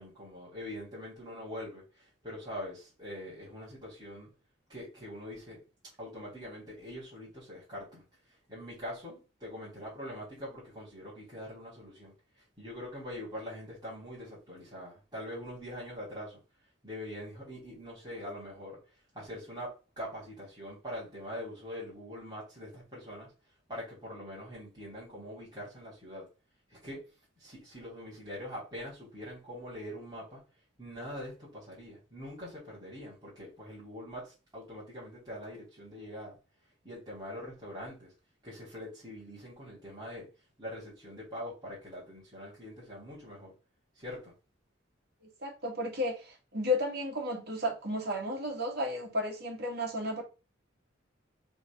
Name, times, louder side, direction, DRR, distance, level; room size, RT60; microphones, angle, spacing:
voice 1, 0.0-4.3 4.7-5.6 6.0-8.1 8.5-12.1 12.6-16.4 16.8-18.8 19.1-23.3 23.7-26.3 26.7-27.0 27.4-30.4 30.8-36.4 36.8-38.1 38.4-40.3 40.6-43.5 44.0-44.3, equal, 20° right, 3.7 m, -43 dB
voice 2, 45.2-50.2, left 1 dB, 55° right, 2.2 m, -33 dB
5.3 x 3.8 x 5.5 m
head